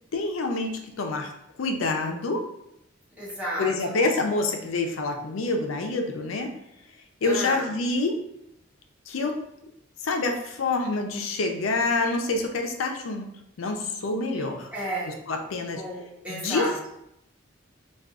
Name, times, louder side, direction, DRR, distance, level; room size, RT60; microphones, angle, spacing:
voice 1, 0.1-1.3 1.6-2.4 3.6-6.5 7.2-8.1 9.1-9.4 10.0-13.3 13.6-14.7 15.1-15.8 16.3-16.9, left 3 dB, 85° left, 4 dB, 0.5 m, -27 dB
voice 2, 3.2-4.0 7.2-7.7 14.3-14.4 14.7-15.2 15.7-16.7, equal, 5° right, -8 dB, 1.0 m, -32 dB
3.5 x 2.3 x 2.3 m, 0.82 s
head